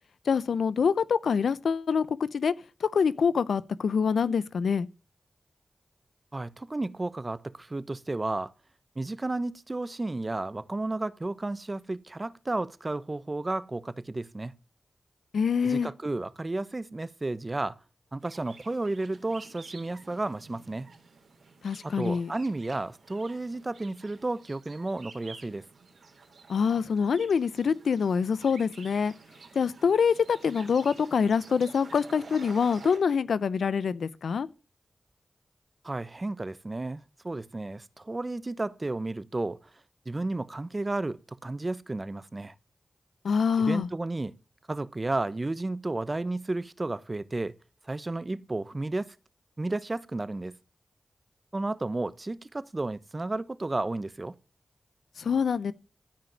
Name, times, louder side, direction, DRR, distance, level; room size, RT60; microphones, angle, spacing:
voice 1, 0.3-2.5 2.8-4.9 15.3-15.9 21.6-22.3 26.5-29.1 29.5-34.5 43.2-43.9 55.2-55.7, left 6 dB, 90° left, 0.6 m, -25 dB
voice 2, 6.3-8.5 8.9-14.5 15.6-17.8 18.1-20.9 21.8-25.6 35.8-39.6 40.0-42.5 43.6-44.3 44.7-47.5 47.8-49.1 49.6-50.6 51.5-54.4, right 2 dB, 35° right, 1.0 m, -32 dB
sound 1, 18.2-33.0, right 4 dB, 80° right, 3.7 m, -51 dB
14.5 x 5.2 x 9.3 m
cardioid pair, 40°, 0 cm